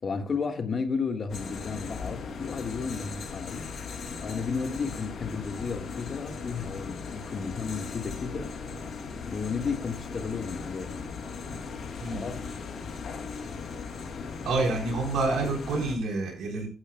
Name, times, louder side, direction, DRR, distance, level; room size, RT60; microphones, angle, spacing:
voice 1, 0.0-3.7 4.2-8.5 9.3-11.0 12.1-12.4, left 5 dB, 45° left, 1.5 m, -33 dB
sound 1, 1.3-16.0, left 5 dB, 65° left, 2.2 m, -38 dB
voice 2, 14.4-16.7, right 3 dB, 85° right, 4.3 m, -28 dB
15.5 x 9.6 x 2.2 m
cardioid pair, 115°, 0 cm